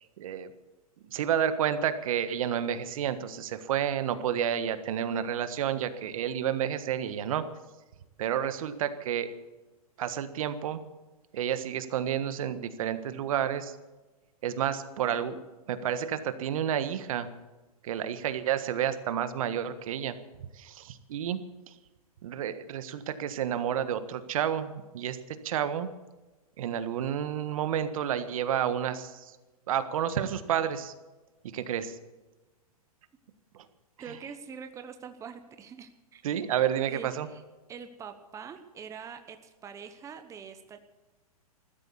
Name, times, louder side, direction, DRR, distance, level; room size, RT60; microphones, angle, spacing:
voice 1, 0.2-0.5 1.1-7.4 8.2-9.3 10.0-10.8 11.3-13.8 14.4-15.4 15.7-17.3 17.8-20.1 20.6-21.4 22.2-25.2 25.4-25.9 26.6-29.3 29.7-30.9 31.5-32.0 33.5-33.6 34.1-34.2 36.2-37.3, right 9 dB, 60° right, 11 dB, 1.5 m, -30 dB
voice 2, 34.0-36.2 36.9-37.4 37.7-40.8, right 6 dB, 15° right, 8 dB, 1.0 m, -44 dB
15.0 x 13.0 x 7.1 m, 1.2 s
hypercardioid pair, 130°, 19 cm